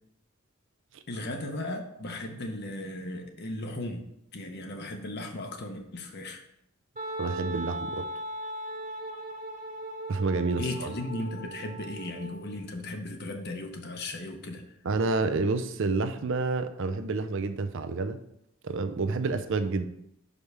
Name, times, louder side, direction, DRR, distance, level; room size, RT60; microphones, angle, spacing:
voice 1, 1.1-4.0 4.3-6.4 10.6-14.6, left 2 dB, 50° left, 4 dB, 0.8 m, -36 dB
Wind instrument woodwind instrument, 7.0-12.6, right 1 dB, 35° right, 1.6 m, -38 dB
voice 2, 7.2-8.1 10.1-10.9 14.8-18.2 18.6-19.9, right 3 dB, 65° right, 10 dB, 0.5 m, -29 dB
5.5 x 5.1 x 4.7 m, 0.77 s
head